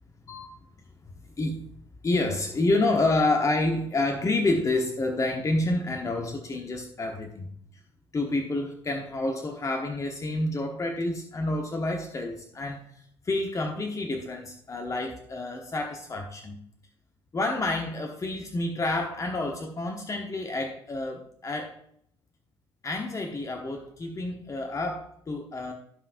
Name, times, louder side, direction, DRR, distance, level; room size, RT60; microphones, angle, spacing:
voice 1, 2.0-7.5 8.1-16.6 17.3-21.7 22.8-25.7, left 2 dB, 25° left, 2 dB, 1.1 m, -29 dB
16.0 x 5.7 x 2.6 m, 0.70 s
figure-of-eight pair, 55°, 13 cm